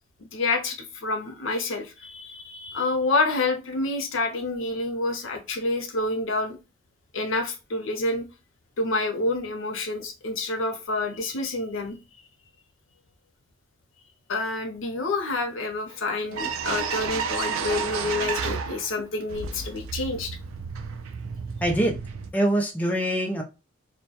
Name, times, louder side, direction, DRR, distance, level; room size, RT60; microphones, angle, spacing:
voice 1, 0.2-6.6 7.1-8.3 8.8-12.0 14.3-20.4, left 2 dB, 75° left, 0.6 m, -28 dB
sound 1, 15.9-16.0 16.3-19.0 19.3-22.3, right 6 dB, 90° right, 0.3 m, -31 dB
voice 2, 21.6-22.0 22.3-23.4, right 1 dB, 10° left, 0.3 m, -24 dB
2.2 x 2.1 x 2.7 m
head